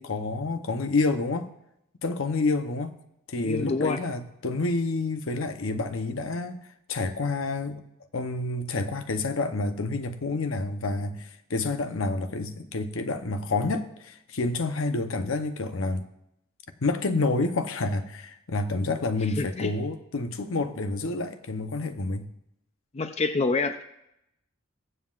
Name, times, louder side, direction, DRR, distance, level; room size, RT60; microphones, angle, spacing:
voice 1, 0.0-1.5 2.0-2.9 3.3-6.6 6.9-7.8 8.1-16.1 16.8-22.3, left 3 dB, 70° left, 0.8 m, -28 dB
voice 2, 3.4-4.0 19.4-19.7 22.9-23.8, left 3 dB, 30° left, 0.5 m, -27 dB
21.5 x 7.6 x 2.4 m
head